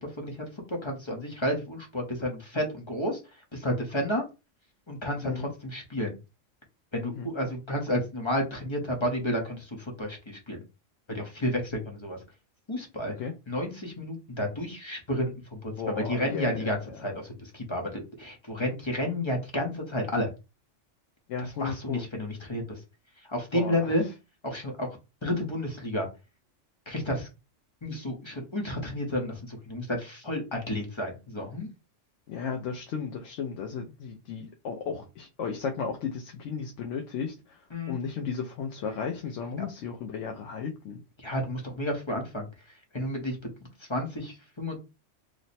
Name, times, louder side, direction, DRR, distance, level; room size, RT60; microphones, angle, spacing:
voice 1, 0.0-3.2 3.5-4.2 4.9-6.1 6.9-10.6 11.1-12.2 12.7-13.1 13.5-20.3 21.6-22.8 23.3-24.0 24.4-24.9 25.2-26.1 26.9-27.3 27.8-31.7 37.7-38.0 41.2-42.5 42.9-43.4 43.9-44.8, left 1 dB, 25° left, 0.7 m, -31 dB
voice 2, 15.8-17.1 21.3-22.0 23.5-24.1 32.3-41.0, left 6 dB, 75° left, 0.9 m, -35 dB
3.1 x 2.1 x 4.0 m
omnidirectional pair, 1.3 m